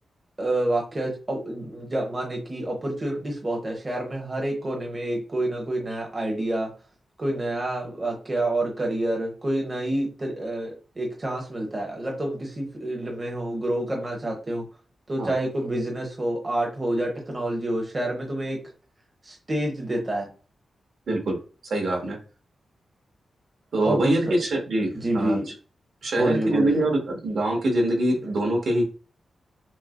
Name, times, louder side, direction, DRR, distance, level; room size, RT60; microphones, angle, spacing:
voice 1, 0.4-6.7 7.2-14.7 15.1-18.6 19.2-20.3 23.8-24.3 25.0-25.5 26.1-26.9, right 1 dB, 25° right, 0 dB, 0.9 m, -28 dB
voice 2, 21.1-21.4 21.7-22.2 23.7-25.4 26.0-28.8, right 1 dB, 65° right, 1 dB, 1.5 m, -24 dB
6.0 x 2.1 x 2.5 m, 0.35 s
wide cardioid pair, 140°, 0 cm